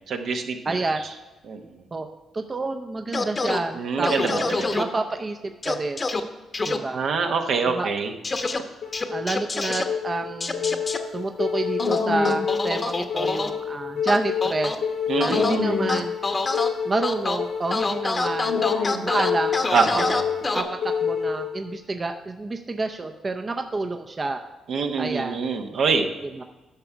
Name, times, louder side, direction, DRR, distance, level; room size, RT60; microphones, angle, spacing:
voice 1, 0.1-1.1 1.5-1.8 3.7-4.3 4.6-4.8 6.9-8.1 15.1-15.8 19.7-20.2 24.7-26.1, right 5 dB, 70° right, 4 dB, 1.0 m, -25 dB
voice 2, 0.7-1.0 1.9-2.1 2.3-6.0 6.6-7.1 7.6-7.9 9.1-10.8 11.1-14.7 15.2-16.1 16.8-18.7 19.0-19.6 20.0-20.1 20.5-24.4 25.0-25.4 26.4-26.5, right 3 dB, 35° right, 5 dB, 0.6 m, -29 dB
sound 1, 3.1-3.6 4.0-4.8 5.6-6.2 6.5-6.8 8.2-8.6 8.9-9.8 10.4-11.0 11.8-13.5 14.1-14.8 15.2-15.5 15.9-16.7 17.0-17.4 17.7-20.6, left 3 dB, 35° left, 0.9 m, -26 dB
sound 2, 8.8-21.8, left 6 dB, 80° left, 1.3 m, -28 dB
10.5 x 5.9 x 4.6 m, 1.1 s
supercardioid pair, 60°, 0 cm